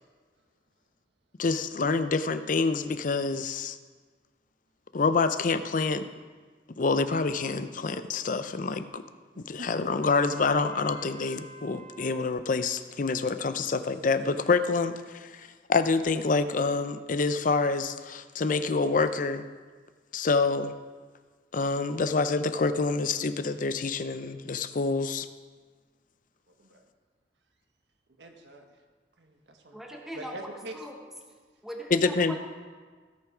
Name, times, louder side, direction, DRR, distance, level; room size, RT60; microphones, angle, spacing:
voice 1, 1.4-3.8 4.9-6.1 6.8-9.0 9.4-19.4 20.1-20.7 21.5-25.3 31.9-32.4, left 4 dB, 50° left, 11 dB, 0.5 m, -27 dB
voice 2, 9.3-9.8 26.6-26.8 28.2-28.7 29.2-29.8 30.1-30.8, right 1 dB, 80° right, 3 dB, 1.3 m, -44 dB
Trumpet, 10.0-12.3, right 2 dB, 40° right, 2.0 m, -47 dB
voice 3, 29.7-31.0 31.6-32.4, equal, ahead, 0 dB, 1.2 m, -40 dB
16.5 x 5.8 x 5.0 m, 1.5 s
head